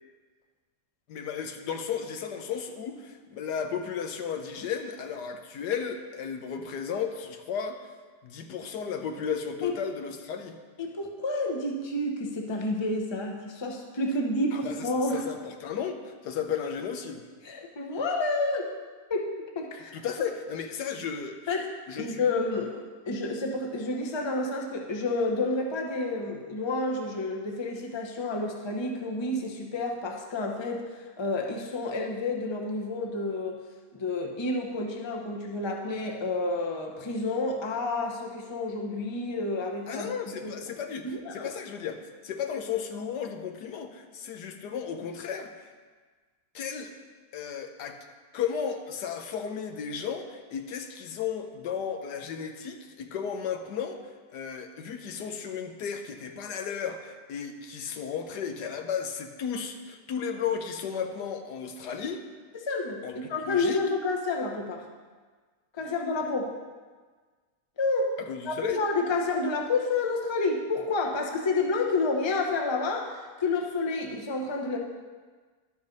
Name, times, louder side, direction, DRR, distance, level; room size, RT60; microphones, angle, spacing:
voice 1, 1.1-7.8 8.2-10.6 14.5-17.2 19.9-21.5 21.9-22.2 39.9-45.7 46.5-46.9 47.3-48.0 48.3-54.0 54.3-62.2 63.0-63.2 63.5-63.8 68.2-68.8, left 7 dB, 80° left, 6 dB, 1.3 m, -34 dB
voice 2, 10.8-15.2 17.4-18.6 19.1-19.9 21.5-21.7 22.0-30.8 31.2-33.6 33.9-40.1 40.4-40.5 41.0-41.5 62.6-64.8 65.7-66.5 67.8-68.2 68.4-74.8, left 2 dB, 25° left, 0 dB, 0.7 m, -29 dB
12.0 x 5.3 x 5.2 m, 1.4 s
omnidirectional pair, 1.8 m